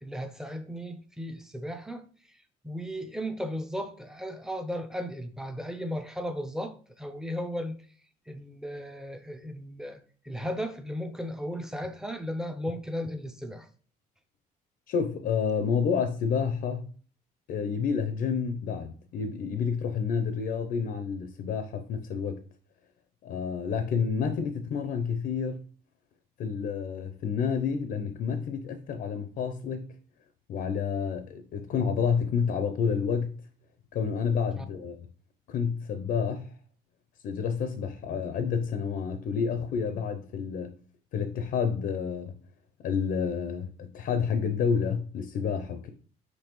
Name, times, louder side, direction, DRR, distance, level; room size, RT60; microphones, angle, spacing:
voice 1, 0.0-2.1 2.6-7.8 8.3-13.7 34.6-34.7, equal, 5° right, 0.6 m, -35 dB
voice 2, 14.9-16.9 17.5-22.4 23.2-25.6 26.4-29.9 30.5-33.3 33.9-35.0 35.5-36.5 37.2-40.8 41.1-42.3 42.8-45.9, left 6 dB, 60° left, 0.5 m, -29 dB
5.2 x 3.2 x 3.0 m
cardioid pair, 110°, 17 cm